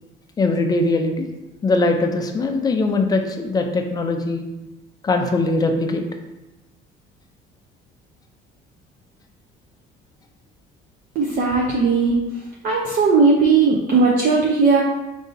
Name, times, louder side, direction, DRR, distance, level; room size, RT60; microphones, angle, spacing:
voice 1, 0.4-1.3 1.6-4.4 5.0-6.0, left 2 dB, 20° left, 4 dB, 0.4 m, -21 dB
voice 2, 11.2-12.2 12.6-14.8, right 4 dB, 40° right, -2 dB, 0.6 m, -17 dB
5.0 x 2.7 x 3.9 m, 1.0 s
cardioid pair, 160°, 21 cm